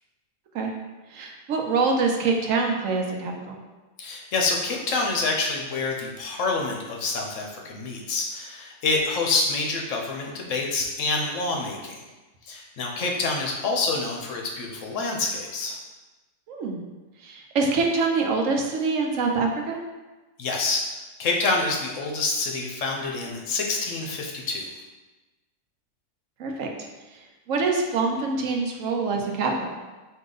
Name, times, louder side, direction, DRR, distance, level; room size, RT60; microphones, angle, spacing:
voice 1, 1.1-3.6 16.5-16.8 17.2-19.8 26.4-26.7 27.5-29.7, right 4 dB, 75° right, 2 dB, 1.0 m, -25 dB
voice 2, 4.0-12.0 12.5-15.8 20.4-20.8 21.2-24.7, left 3 dB, 70° left, 0 dB, 1.1 m, -27 dB
4.7 x 2.8 x 3.8 m, 1.2 s
omnidirectional pair, 1.4 m